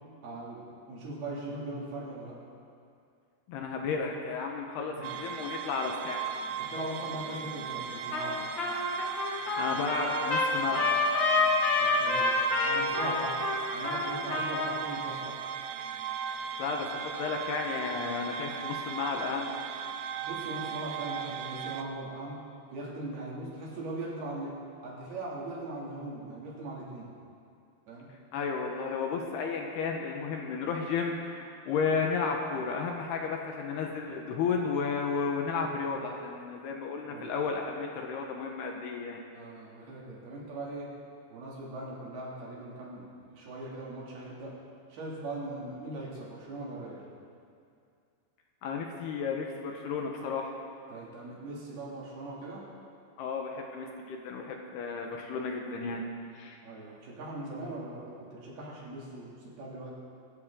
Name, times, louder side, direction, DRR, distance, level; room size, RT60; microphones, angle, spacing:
voice 1, 0.2-2.4 4.9-5.1 6.6-8.4 11.8-13.3 13.7-15.4 20.2-22.4 22.7-24.5 24.8-27.1 27.9-28.1 37.1-37.3 39.3-40.9 41.3-44.5 44.9-47.0 50.9-52.6 56.6-59.9, right 2 dB, 60° right, -5 dB, 4.5 m, -40 dB
voice 2, 3.5-6.2 9.6-10.9 16.6-19.5 28.3-39.2 48.6-50.5 53.2-56.1 56.4-56.6, left 5 dB, 70° left, 1 dB, 2.9 m, -33 dB
sound 1, 5.0-21.8, right 7 dB, 80° right, 2.4 m, -37 dB
Trumpet, 8.1-8.3 8.6-14.8, left 3 dB, 35° left, 2.0 m, -28 dB
24.0 x 13.0 x 3.8 m, 2.4 s
omnidirectional pair, 5.2 m